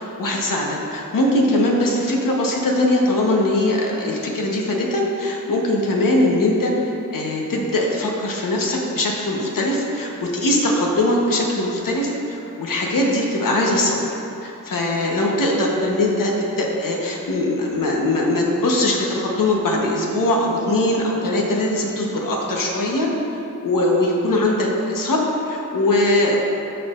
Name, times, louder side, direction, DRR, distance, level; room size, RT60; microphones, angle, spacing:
voice 1, 0.0-6.7 7.1-14.0 14.4-23.1 23.6-26.4, left 1 dB, 80° left, -2 dB, 1.1 m, -21 dB
13.5 x 4.8 x 2.5 m, 2.8 s
wide cardioid pair, 70°, 32 cm